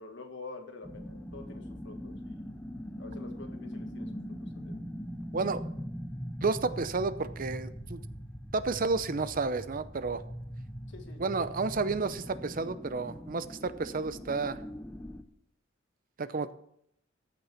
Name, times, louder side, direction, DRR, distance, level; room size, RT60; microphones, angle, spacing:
voice 1, 0.0-2.6 3.0-4.1 4.4-4.7 10.9-12.0, left 3 dB, 60° left, 5 dB, 1.7 m, -48 dB
sound 1, 0.8-15.2, equal, 10° left, 0.8 m, -41 dB
voice 2, 6.4-8.0 8.5-10.2 11.2-14.6 16.2-16.5, right 4 dB, 45° right, 13 dB, 0.6 m, -31 dB
15.0 x 6.1 x 5.8 m, 0.72 s
head